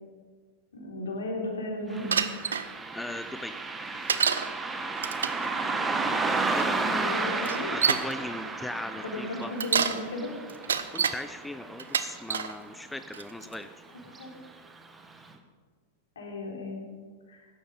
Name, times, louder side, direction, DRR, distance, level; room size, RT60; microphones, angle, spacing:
voice 1, 0.7-2.2 7.0-7.7 9.0-10.3 14.1-14.3 16.2-16.9 17.3-17.4, left 2 dB, 70° left, 0 dB, 3.9 m, -35 dB
Car passing by, 1.9-12.7 13.0-13.1 14.1-14.2 14.7-14.8 15.3-15.4, right 3 dB, 15° right, 1.5 m, -32 dB
Bicycle, 2.1-2.7 4.1-4.5 5.0-5.4 6.5-6.6 7.4-8.1 9.4-10.0 10.5-11.2 11.8-12.5 13.1-13.5, right 7 dB, 75° right, 0.8 m, -27 dB
voice 2, 2.9-3.5 6.3-7.0 7.7-9.5 10.9-13.7, left 1 dB, 5° left, 10 dB, 0.6 m, -38 dB
16.0 x 12.5 x 5.2 m, 1.5 s
figure-of-eight pair, 95°, 0 cm